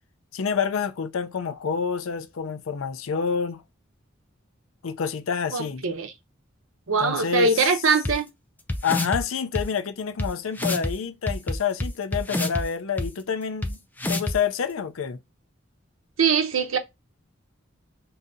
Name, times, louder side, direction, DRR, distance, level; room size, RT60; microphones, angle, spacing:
voice 1, 0.3-3.6 4.8-5.8 7.0-7.7 8.8-13.8 14.1-15.2, left 6 dB, 85° left, 0.5 m, -28 dB
voice 2, 5.5-6.1 6.9-8.3 16.2-16.8, right 4 dB, 90° right, 0.7 m, -22 dB
sound 1, 8.0-8.1 8.7-9.2 9.5-9.6 10.2-10.3 10.6-10.9 11.3-12.6 13.0-13.1 13.6-13.7 14.0-14.4, left 1 dB, 10° left, 0.3 m, -26 dB
2.7 x 2.7 x 3.6 m
head